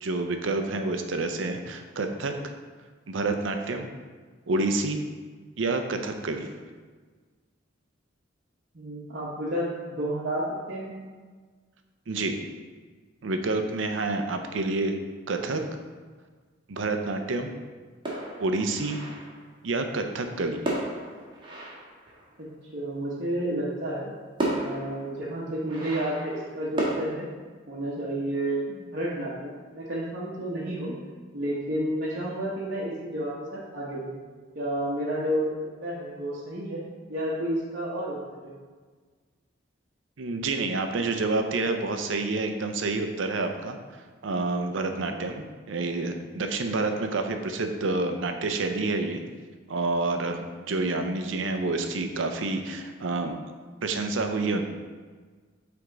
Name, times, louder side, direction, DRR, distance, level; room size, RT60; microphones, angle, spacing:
voice 1, 0.0-2.5 3.1-3.9 4.5-5.0 5.6-6.5 12.1-12.4 13.2-14.9 15.3-15.6 16.7-17.5 18.4-19.0 19.6-20.6 40.2-43.8 44.2-49.2 49.7-53.4 53.8-54.6, right 3 dB, 75° right, 6 dB, 0.6 m, -28 dB
voice 2, 8.7-10.9 22.4-22.5 22.7-24.1 24.5-27.3 27.7-30.9 31.3-34.2 34.5-35.5 35.8-36.8 37.1-38.5, right 1 dB, 55° right, -8 dB, 1.0 m, -31 dB
sound 1, 18.1-19.5 20.6-22.6 23.8-23.9 24.4-27.0, right 1 dB, 25° right, 1.5 m, -33 dB
7.8 x 3.5 x 3.9 m, 1.5 s
head